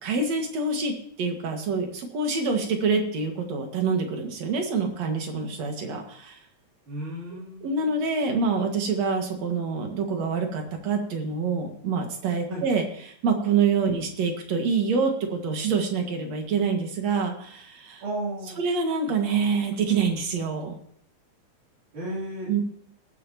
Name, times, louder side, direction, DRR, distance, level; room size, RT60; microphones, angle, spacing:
voice 1, 0.0-6.4 7.6-18.0 18.6-20.8 22.5-22.6, right 4 dB, 60° right, 3 dB, 3.0 m, -26 dB
voice 2, 6.9-7.7 12.5-12.6 18.0-18.6 21.9-22.5, right 1 dB, 80° right, -6 dB, 4.8 m, -33 dB
19.5 x 10.5 x 2.9 m, 0.65 s
omnidirectional pair, 3.5 m